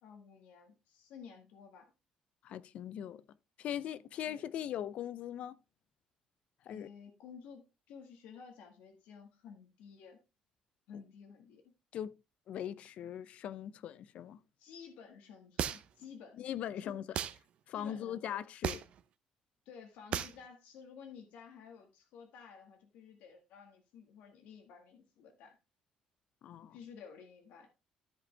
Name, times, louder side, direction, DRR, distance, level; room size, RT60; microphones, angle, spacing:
voice 1, 0.0-1.9 4.3-4.4 6.7-10.2 10.9-11.7 14.6-16.5 16.8-17.0 17.7-18.4 19.7-25.6 26.7-27.7, left 6 dB, 85° left, 1.7 m, -53 dB
voice 2, 2.4-3.2 3.6-5.6 6.6-6.9 11.9-12.1 12.5-14.4 16.4-17.0 17.7-18.8 26.4-26.8, left 10 dB, 60° left, 0.5 m, -40 dB
sound 1, 15.6-16.0 17.1-17.4 18.6-19.0 20.1-20.4, right 9 dB, 55° right, 0.7 m, -35 dB
14.0 x 5.2 x 3.3 m
cardioid pair, 135°, 2 cm